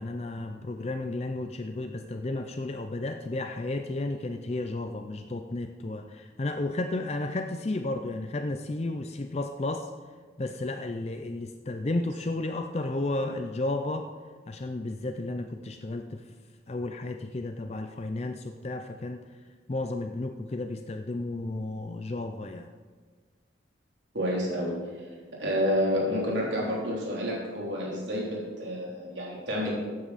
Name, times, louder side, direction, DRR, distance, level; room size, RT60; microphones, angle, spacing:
voice 1, 0.0-9.9 10.4-14.1 14.5-16.3 16.7-19.2 19.7-22.7, left 2 dB, 35° left, 6 dB, 0.5 m, -33 dB
voice 2, 24.1-25.1 25.4-29.7, equal, 70° right, -4 dB, 3.3 m, -29 dB
15.0 x 9.4 x 4.1 m, 1.5 s
head